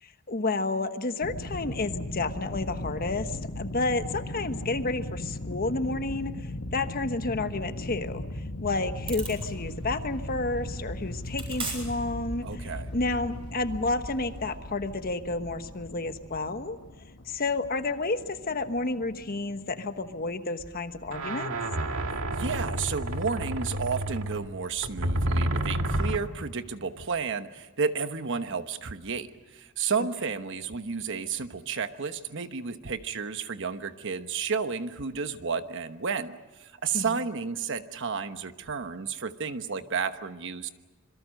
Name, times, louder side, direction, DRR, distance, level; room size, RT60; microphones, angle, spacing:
voice 1, 0.0-16.8 17.2-21.5 36.9-37.2, left 3 dB, 45° left, 9 dB, 1.2 m, -31 dB
sound 1, 1.2-20.3, left 1 dB, 70° left, 1.7 m, -38 dB
sound 2, 9.0-14.6, right 3 dB, 25° right, 7.5 m, -43 dB
voice 2, 12.4-12.9 22.0-40.7, right 5 dB, 60° right, 10 dB, 1.1 m, -32 dB
sound 3, 20.6-20.7 21.1-26.2, right 1 dB, 80° right, 1.8 m, -29 dB
26.5 x 23.0 x 6.5 m, 1.3 s
head